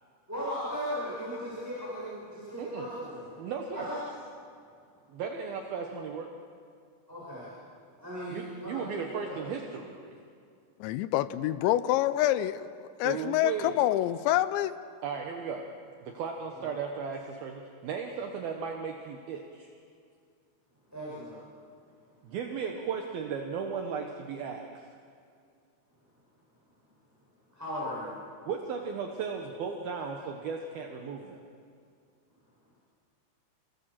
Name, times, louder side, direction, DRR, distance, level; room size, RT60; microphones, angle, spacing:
voice 1, 0.3-3.3 3.7-4.0 7.1-7.5 8.0-9.4 16.5-16.7 20.9-21.3 27.5-28.2, equal, 5° right, -9 dB, 7.0 m, -37 dB
voice 2, 2.6-2.9 3.4-4.0 5.1-6.3 8.3-10.2 13.0-13.8 15.0-15.7 16.0-19.7 22.2-24.9 28.5-31.4, right 6 dB, 65° right, 3 dB, 2.8 m, -36 dB
voice 3, 10.8-12.7 13.0-14.7, left 13 dB, 90° left, 12 dB, 3.0 m, -26 dB
30.0 x 19.0 x 7.6 m, 2.3 s
omnidirectional pair, 5.1 m